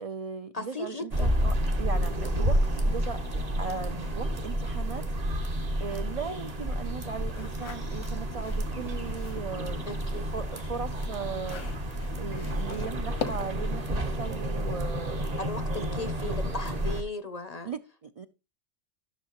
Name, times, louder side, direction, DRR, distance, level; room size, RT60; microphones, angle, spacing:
voice 1, 0.0-5.1 5.8-11.8 12.2-15.3 15.7-16.4 16.7-16.8 17.6-18.3, right 5 dB, 65° right, 0.3 m, -38 dB
voice 2, 0.5-1.3 9.9-10.3 15.4-17.7, left 3 dB, 45° left, 0.5 m, -37 dB
sound 1, 1.1-17.0, equal, 35° right, 0.9 m, -30 dB
sound 2, 7.3-9.5 9.9-13.7, left 6 dB, 90° left, 1.3 m, -41 dB
13.0 x 6.4 x 2.9 m
omnidirectional pair, 1.3 m